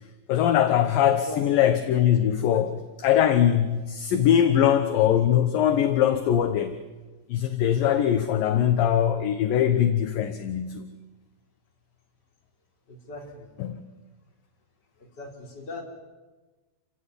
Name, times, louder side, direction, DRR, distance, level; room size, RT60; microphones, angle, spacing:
voice 1, 0.3-2.7 3.0-6.8 7.3-10.9 13.6-13.8, left 10 dB, 70° left, 2.5 m, -22 dB
voice 2, 1.0-1.8 2.5-2.8 12.9-13.5 15.0-15.8, left 2 dB, 25° left, 4.5 m, -40 dB
28.5 x 17.0 x 9.8 m
omnidirectional pair, 4.7 m